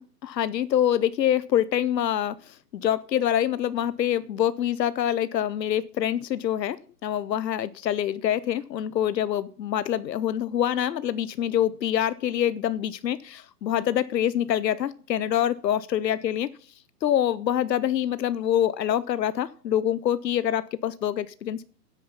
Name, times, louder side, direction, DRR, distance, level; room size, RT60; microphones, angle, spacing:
voice 1, 0.0-16.5 17.0-21.6, left 10 dB, 90° left, 0.8 m, -25 dB
10.0 x 9.2 x 5.3 m
hypercardioid pair, 160°, 49 cm